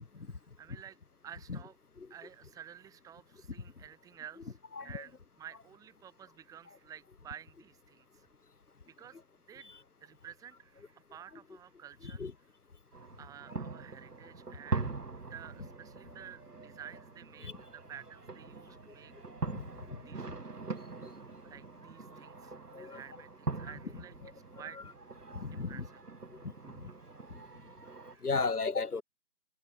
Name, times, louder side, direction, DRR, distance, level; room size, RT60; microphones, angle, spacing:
voice 1, 0.6-1.0 1.2-1.8 2.1-8.3 8.9-9.2 9.5-9.7 10.0-12.3 13.0-14.9 15.3-19.1 19.6-20.3 21.4-24.2 24.5-24.8 25.5-26.0 28.1-28.3, right 9 dB, 5° right, 4.7 m, -51 dB
sound 1, 12.9-28.1, right 3 dB, 75° right, 4.7 m, -43 dB
voice 2, 25.3-25.9 28.2-29.0, left 4 dB, 65° left, 4.1 m, -34 dB
figure-of-eight pair, 155°, 48 cm